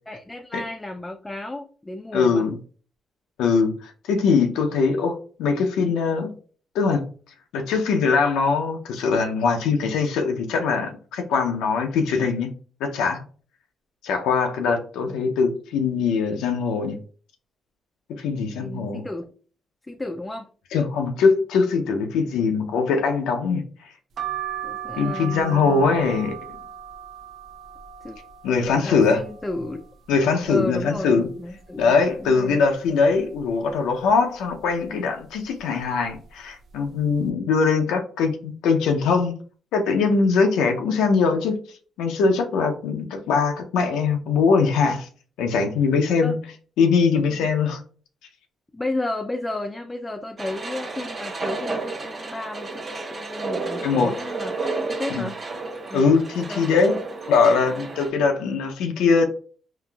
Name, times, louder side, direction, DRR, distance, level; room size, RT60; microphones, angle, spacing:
voice 1, 0.1-2.5 15.1-15.2 18.5-19.3 19.9-20.5 24.6-26.0 28.0-28.2 28.6-29.8 30.5-32.6 46.2-46.4 47.1-47.5 48.7-54.5 55.0-55.3 55.9-56.7 56.9-57.0, left 2 dB, 15° left, 4 dB, 0.3 m, -33 dB
voice 2, 2.1-2.6 3.4-6.3 6.7-7.0 7.5-12.5 12.8-13.2 14.0-17.0 18.2-19.0 20.7-23.6 25.0-26.4 28.4-29.2 30.1-31.3 31.8-39.4 39.7-41.6 42.0-45.1 45.4-46.4 46.8-47.8 53.8-54.1 55.1-55.3 55.9-56.9 57.3-59.3, left 5 dB, 90° left, 4 dB, 0.4 m, -21 dB
sound 1, 24.2-29.8 30.3-31.1 31.5-31.6 31.7-32.9 33.3-33.7 34.5-34.8 35.6-35.8 36.1-36.3, right 10 dB, 60° right, 0.5 m, -37 dB
sound 2, 50.4-58.1, right 3 dB, 40° right, 0.8 m, -32 dB
3.8 x 2.4 x 2.2 m, 0.41 s
cardioid pair, 90°, 0 cm